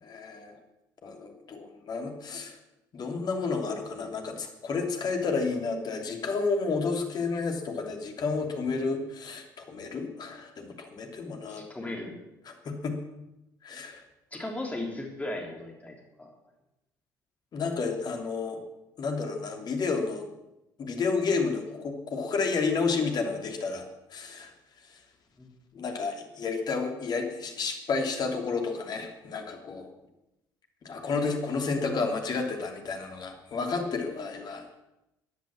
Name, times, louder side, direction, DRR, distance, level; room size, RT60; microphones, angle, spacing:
voice 1, 0.0-0.6 1.0-2.6 2.9-11.6 12.5-13.0 13.6-14.0 17.5-18.6 19.0-20.3 20.8-23.9 24.1-24.5 24.9-25.0 25.7-29.9 30.8-34.7, left 4 dB, 45° left, 3 dB, 2.8 m, -31 dB
voice 2, 11.5-12.1 14.3-16.3 25.4-25.5, left 2 dB, 15° left, 0 dB, 3.4 m, -36 dB
14.5 x 10.5 x 7.4 m, 0.91 s
figure-of-eight pair, 55°, 10 cm